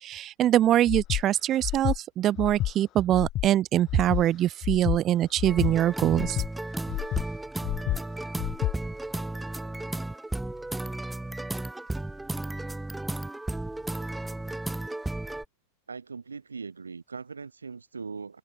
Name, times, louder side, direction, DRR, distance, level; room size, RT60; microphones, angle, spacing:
voice 1, 0.0-6.4, right 12 dB, 30° right, 1.0 m, -24 dB
Breathing, 0.9-1.2 1.6-2.0 2.4-2.7 3.1-3.5 3.9-4.2 4.6-5.0 5.4-5.7 6.1-6.5 6.9-7.2 7.6-8.0 8.4-8.7, left 15 dB, 35° left, 1.0 m, -29 dB
sound 1, 5.5-15.5, right 2 dB, 5° right, 2.5 m, -34 dB
voice 2, 15.9-18.4, right 5 dB, 75° right, 3.7 m, -40 dB
open air
figure-of-eight pair, 90°, 0 cm